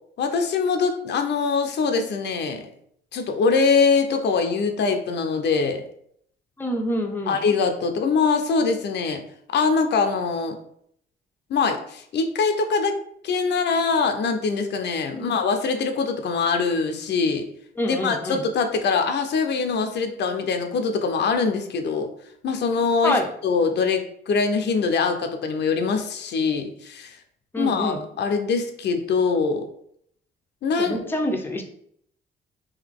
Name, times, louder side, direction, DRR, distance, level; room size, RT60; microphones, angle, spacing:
voice 1, 0.2-2.7 3.1-5.8 7.3-9.2 9.5-10.6 11.5-17.5 17.8-22.1 22.4-27.2 27.6-29.7 30.6-31.0, left 4 dB, 60° left, 6 dB, 0.6 m, -23 dB
voice 2, 6.6-7.4 15.1-15.3 17.8-18.4 23.0-23.3 27.5-28.0 30.8-31.6, left 1 dB, 10° left, 2 dB, 0.6 m, -26 dB
3.8 x 2.8 x 3.5 m, 0.68 s
cardioid pair, 100°, 20 cm